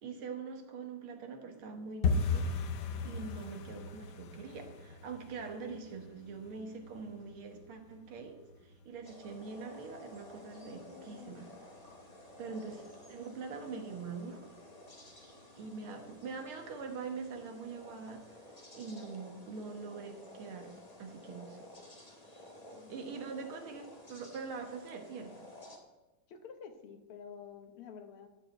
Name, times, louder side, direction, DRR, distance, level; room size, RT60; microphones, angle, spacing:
voice 1, 0.0-2.5 3.0-11.5 12.4-14.5 15.6-18.4 18.7-20.7 21.0-21.7 22.3-22.4 22.9-25.5, right 4 dB, 80° right, 5 dB, 2.2 m, -44 dB
sound 1, 2.0-12.8 13.0-13.7 14.0-14.3 14.5-14.9 15.2-15.3 15.8-16.3 16.7-16.8 17.3-17.4, left 4 dB, 65° left, 1.2 m, -39 dB
voice 2, 3.0-3.4 10.6-11.5 22.7-22.9 26.3-28.3, left 6 dB, 85° left, 7 dB, 2.0 m, -50 dB
sound 2, 9.0-25.8, left 1 dB, 20° left, 1.4 m, -53 dB
13.5 x 5.0 x 7.9 m, 1.1 s
omnidirectional pair, 2.3 m